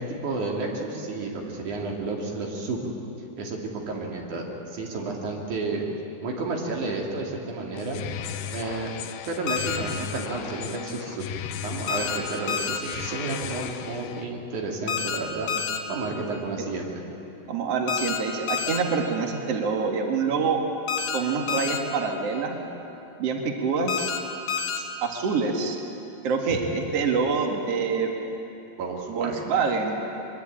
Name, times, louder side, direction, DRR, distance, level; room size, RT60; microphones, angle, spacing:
voice 1, 0.0-2.8 3.4-5.9 6.2-8.0 8.5-8.9 9.3-11.3 11.6-15.5 15.9-17.0 26.5-26.6 28.8-29.5, right 3 dB, 45° right, 0 dB, 3.5 m, -31 dB
sound 1, 7.7-14.3, left 9 dB, 85° left, 3.7 m, -36 dB
sound 2, 9.5-9.8 11.9-12.2 12.5-12.8 14.9-15.2 15.5-15.8 17.9-18.2 18.5-18.8 20.9-21.2 21.5-21.8 23.9-24.2 24.5-24.8, left 6 dB, 60° left, 2.4 m, -28 dB
voice 2, 17.5-20.6 21.1-22.6 23.2-24.1 24.8-25.8 26.2-28.1 29.1-30.0, right 5 dB, 80° right, 2 dB, 1.4 m, -26 dB
23.5 x 22.0 x 8.7 m, 2.9 s
omnidirectional pair, 5.9 m